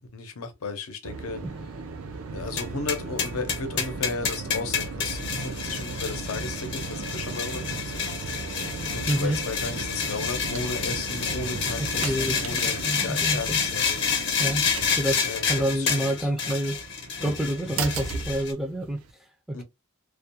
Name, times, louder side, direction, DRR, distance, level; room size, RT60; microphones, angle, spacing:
voice 1, 0.0-1.4 2.3-8.1 8.9-14.0 15.2-16.3 17.6-17.9 19.5-19.6, left 4 dB, 90° left, 0.6 m, -35 dB
sound 1, 1.0-19.1, right 4 dB, 80° right, 0.5 m, -36 dB
sound 2, 2.6-18.5, left 6 dB, 55° left, 0.7 m, -29 dB
voice 2, 9.1-9.4 12.0-12.4 12.9-13.6 14.4-14.7 14.9-16.8 17.2-19.0 19.5-19.6, right 1 dB, ahead, 0.3 m, -27 dB
2.3 x 2.2 x 2.6 m
head